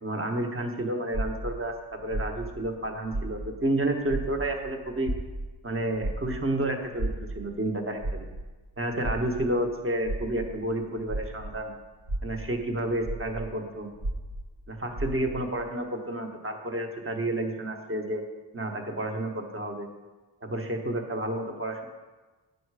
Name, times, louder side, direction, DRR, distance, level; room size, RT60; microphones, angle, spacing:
voice 1, 0.0-1.7 2.0-5.1 5.6-8.3 8.8-11.7 12.2-13.9 14.7-18.2 18.5-19.9 20.4-21.9, right 1 dB, 30° right, 3 dB, 1.0 m, -30 dB
sound 1, 1.1-3.8 4.1-11.6 12.0-15.5, right 2 dB, 80° right, 1.3 m, -34 dB
8.7 x 6.6 x 4.7 m, 1.3 s
wide cardioid pair, 125°, 44 cm